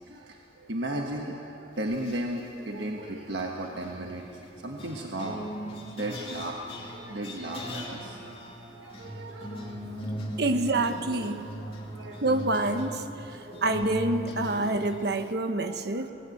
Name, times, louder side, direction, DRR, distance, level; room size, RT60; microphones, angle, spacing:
voice 1, 0.1-0.4 0.7-4.2 4.6-8.2 8.8-10.4 11.7-12.2 13.3-13.9 14.5-14.6 15.6-15.7 15.9-16.1, right 1 dB, 80° right, 1 dB, 1.4 m, -36 dB
sound 1, 1.9-2.4 3.4-15.0, equal, 35° left, 2.8 m, -39 dB
voice 2, 10.4-11.4 12.2-13.1 13.6-16.1, right 2 dB, 65° right, 8 dB, 1.2 m, -27 dB
19.0 x 18.0 x 7.9 m, 2.9 s
head